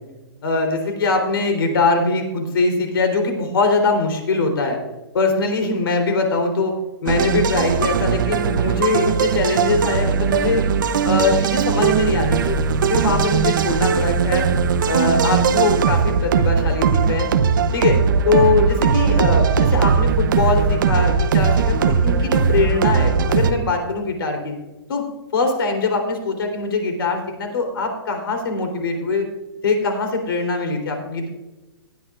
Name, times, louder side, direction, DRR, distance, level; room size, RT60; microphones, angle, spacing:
voice 1, 0.4-4.8 5.1-6.7 7.0-10.6 11.0-14.5 14.9-17.3 17.7-18.0 18.3-24.5 24.9-25.0 25.3-29.3 29.6-31.3, left 3 dB, 65° left, 4 dB, 3.8 m, -22 dB
sound 1, 7.1-23.5, right 6 dB, 50° right, 0.9 m, -19 dB
18.5 x 10.5 x 2.5 m, 1.1 s
hypercardioid pair, 170°, 13 cm